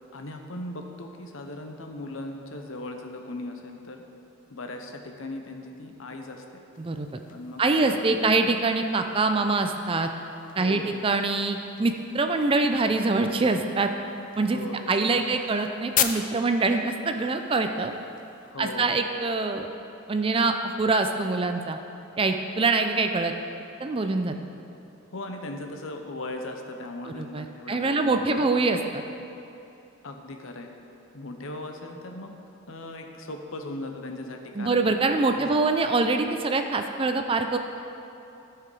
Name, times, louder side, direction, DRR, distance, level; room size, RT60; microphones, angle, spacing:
voice 1, 0.1-4.0 4.5-6.4 7.3-8.3 10.5-10.9 14.4-14.8 15.1-15.3 18.4-19.0 25.1-28.4 30.0-30.7 31.1-32.3 32.7-35.5, left 2 dB, 70° left, 4 dB, 0.8 m, -38 dB
sound 1, 6.7-18.5, left 9 dB, 40° left, 0.4 m, -38 dB
voice 2, 7.6-10.1 10.6-13.9 14.4-17.9 18.6-19.7 20.1-21.8 22.2-23.3 23.8-24.3 27.1-29.0 34.6-37.6, right 3 dB, 25° right, 6 dB, 0.4 m, -24 dB
14.0 x 4.9 x 4.7 m, 2.8 s
head